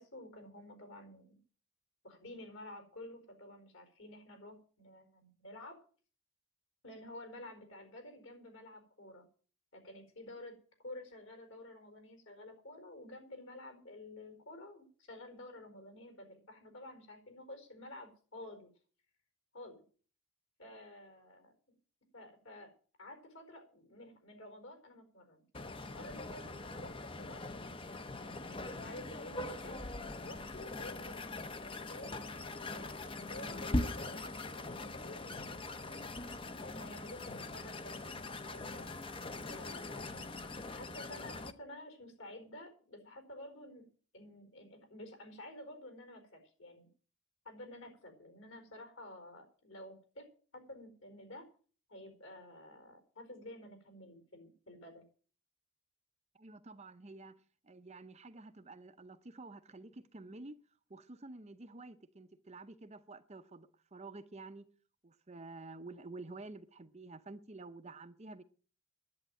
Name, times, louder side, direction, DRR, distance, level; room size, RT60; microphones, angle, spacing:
voice 1, 0.0-1.4 2.0-5.8 6.8-9.3 9.7-10.6 10.8-18.7 19.5-19.8 20.6-21.5 22.1-22.7 23.0-27.4 28.2-29.8 30.2-36.1 36.4-38.8 39.5-40.2 40.7-43.9 44.1-46.9 47.4-51.5 51.9-55.0, left 1 dB, 60° left, 4.6 m, -51 dB
sound 1, 25.5-41.5, left 2 dB, 25° left, 0.8 m, -42 dB
voice 2, 56.3-60.6 60.9-64.7 65.0-68.4, right 2 dB, 30° right, 0.7 m, -50 dB
10.5 x 8.9 x 8.8 m
head